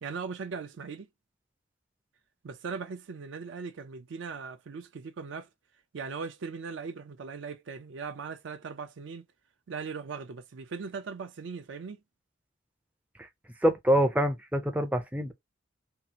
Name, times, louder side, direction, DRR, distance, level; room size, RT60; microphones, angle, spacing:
voice 1, 0.0-1.1 2.4-5.5 5.9-9.2 9.7-12.0, right 5 dB, 70° right, 0.4 m, -39 dB
voice 2, 13.6-15.3, equal, 5° right, 0.4 m, -25 dB
2.7 x 2.4 x 2.7 m
head